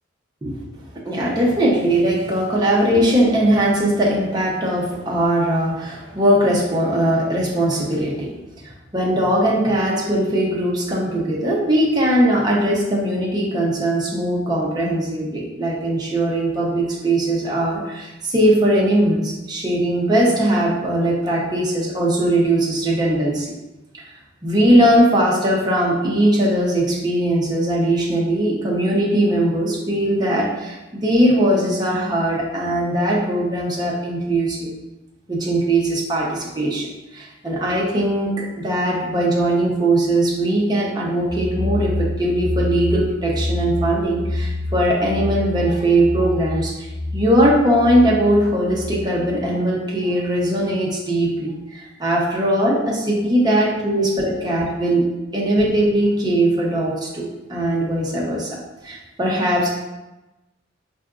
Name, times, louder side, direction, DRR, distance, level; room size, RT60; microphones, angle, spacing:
voice 1, 1.0-8.3 8.6-23.5 23.9-24.0 24.4-34.7 35.3-36.9 37.1-55.0 55.3-58.6 58.8-59.7, right 1 dB, 20° right, -4 dB, 0.6 m, -20 dB
sound 1, 41.3-49.0, left 2 dB, 20° left, 0.6 m, -27 dB
4.4 x 2.5 x 2.3 m, 1.0 s
head